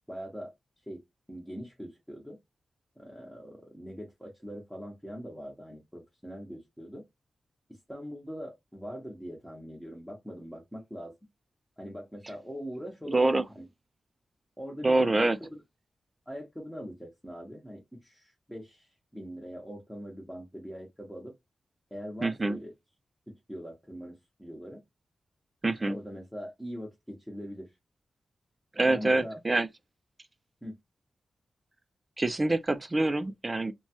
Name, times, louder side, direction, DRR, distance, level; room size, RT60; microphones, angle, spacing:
voice 1, 0.1-0.5 0.9-2.4 3.0-7.1 7.7-11.1 11.8-13.7 14.6-15.6 16.3-21.3 21.9-22.7 23.3-24.8 25.9-27.7 28.9-29.4 30.6-30.8, equal, ahead, 0.8 m, -42 dB
voice 2, 13.1-13.4 14.8-15.4 22.2-22.6 25.6-26.0 28.8-29.7 32.2-33.7, right 2 dB, 25° right, 0.3 m, -25 dB
3.0 x 2.2 x 2.8 m
wide cardioid pair, 110°, 0 cm